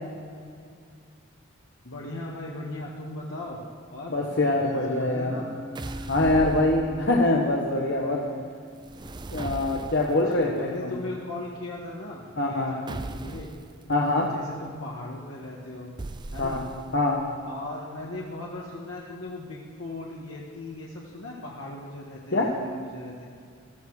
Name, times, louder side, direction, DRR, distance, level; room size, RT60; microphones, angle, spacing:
voice 1, 1.8-3.6 3.9-4.2 4.9-5.5 10.1-13.5 14.3-15.9 16.3-16.6 17.5-23.2, left 2 dB, 85° left, -4 dB, 1.7 m, -38 dB
voice 2, 4.1-5.3 6.1-8.3 9.3-10.9 12.4-12.8 13.9-14.3 16.4-16.6 16.9-17.2 22.3-22.5, left 2 dB, 55° left, -2 dB, 1.3 m, -24 dB
Musical instrument, 4.6-11.0, left 1 dB, 90° right, 4.5 m, -44 dB
sound 1, 5.7-7.4 8.8-10.3 12.9-13.7 16.0-17.1, right 2 dB, 20° right, 0.4 m, -37 dB
15.0 x 14.5 x 4.9 m, 2.2 s
head